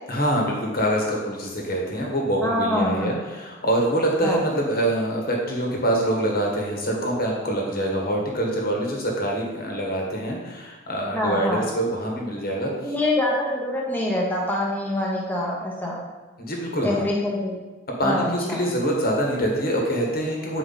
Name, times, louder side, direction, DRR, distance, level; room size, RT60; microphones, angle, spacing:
voice 1, 0.1-12.9 16.4-17.0 18.0-20.6, right 1 dB, 45° left, -1 dB, 1.4 m, -25 dB
voice 2, 2.4-3.2 4.2-4.4 11.1-11.7 12.8-16.0 16.8-17.6 18.0-18.6, left 1 dB, 10° left, -3 dB, 1.1 m, -25 dB
7.8 x 4.6 x 4.0 m, 1.2 s
head